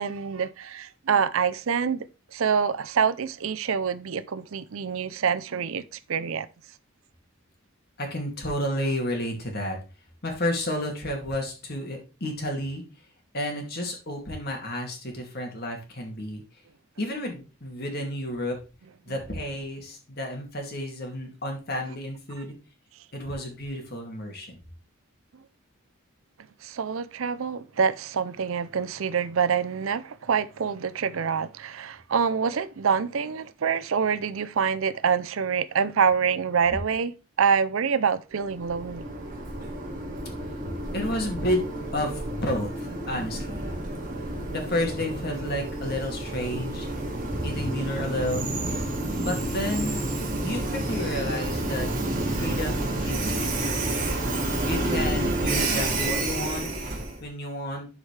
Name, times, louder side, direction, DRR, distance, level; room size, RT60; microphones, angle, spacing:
voice 1, 0.0-2.1 2.3-5.8 6.1-6.5 26.6-39.0, right 6 dB, 70° right, 0.5 m, -26 dB
voice 2, 8.0-9.8 10.2-12.8 13.3-16.4 17.0-18.6 19.1-22.5 23.1-24.6 40.9-41.6 41.9-43.9 44.5-46.9 47.4-48.5 49.2-50.0 50.4-51.9 52.3-53.5 54.7-56.7 57.2-57.9, left 1 dB, 45° left, 2.3 m, -31 dB
Train, 38.4-57.2, right 2 dB, 40° right, 2.2 m, -29 dB
11.5 x 4.9 x 3.3 m
head